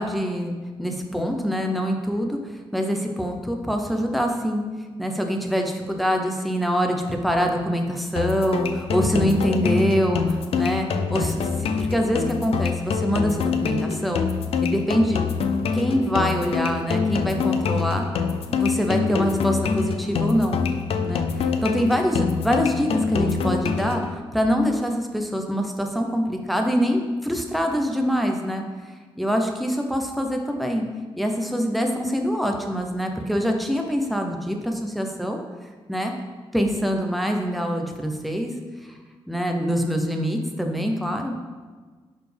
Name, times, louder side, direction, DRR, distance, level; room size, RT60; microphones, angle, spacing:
voice 1, 0.0-2.4 2.7-4.6 5.0-11.5 11.8-14.3 14.6-15.2 15.7-18.1 18.5-20.6 21.0-24.0 24.3-28.6 29.2-30.8 31.2-35.4 35.9-36.1 36.5-38.5 39.3-41.3, equal, ahead, 3 dB, 0.7 m, -24 dB
sound 1, 8.2-24.2, left 5 dB, 70° left, 0.5 m, -25 dB
11.0 x 4.2 x 3.4 m, 1.4 s
wide cardioid pair, 140°, 10 cm